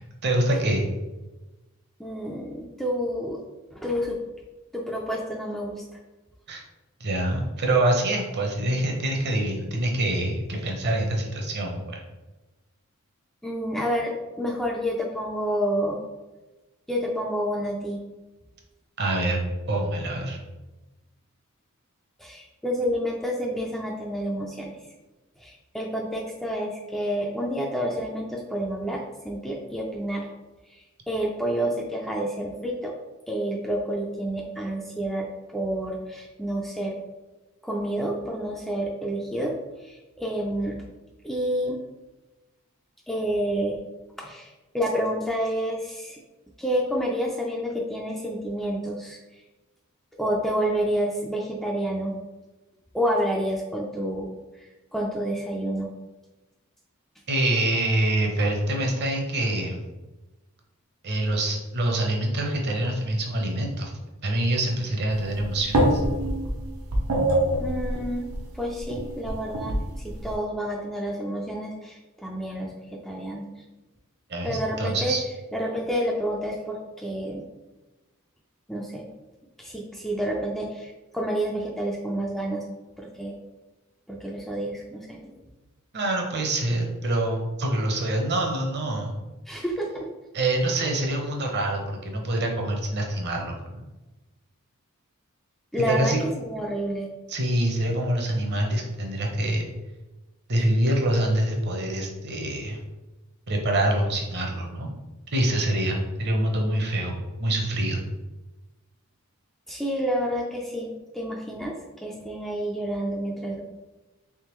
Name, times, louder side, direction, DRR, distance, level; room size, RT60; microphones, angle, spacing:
voice 1, 0.2-0.9 6.5-6.6 7.0-12.0 19.0-19.4 19.7-20.4 57.3-59.8 61.0-63.9 64.2-66.0 74.3-75.2 85.9-89.1 90.3-93.9 95.8-96.2 97.3-99.7 100.5-102.8 103.5-104.9 105.3-108.0, right 1 dB, 50° right, 1 dB, 0.8 m, -25 dB
voice 2, 2.0-3.4 3.7-4.2 4.7-5.8 13.4-16.0 16.9-18.0 22.2-24.7 25.4-30.3 31.1-32.9 33.3-35.3 35.5-37.0 37.6-39.5 39.8-40.8 41.2-41.8 43.1-43.8 44.2-46.2 46.6-49.2 50.2-52.2 52.9-54.3 54.9-55.9 67.6-69.7 70.0-73.5 74.4-75.2 75.5-77.4 78.7-79.1 79.6-82.7 83.0-83.3 84.1-85.4 89.5-90.1 95.7-96.2 96.4-97.1 109.7-113.6, equal, ahead, -1 dB, 0.3 m, -29 dB
sound 1, 65.1-70.3, right 1 dB, 85° right, 0.7 m, -26 dB
3.6 x 3.2 x 3.0 m, 1.1 s
head